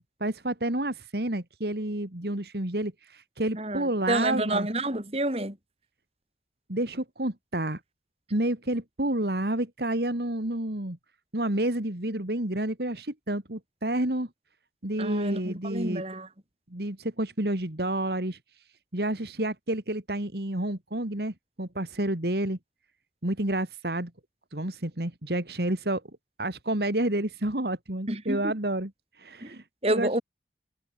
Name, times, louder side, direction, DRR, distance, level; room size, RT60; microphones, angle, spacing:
voice 1, 0.0-4.7 6.7-7.8 8.3-11.0 11.3-14.3 14.8-16.0 16.7-18.4 18.9-22.6 23.2-24.1 24.5-26.0 26.4-28.9 29.2-29.6 29.9-30.2, right 1 dB, 65° right, 2.6 m, -29 dB
voice 2, 3.5-5.6 15.0-16.3 28.1-28.4 29.4-29.5 29.8-30.2, right 1 dB, 35° right, 4.7 m, -29 dB
head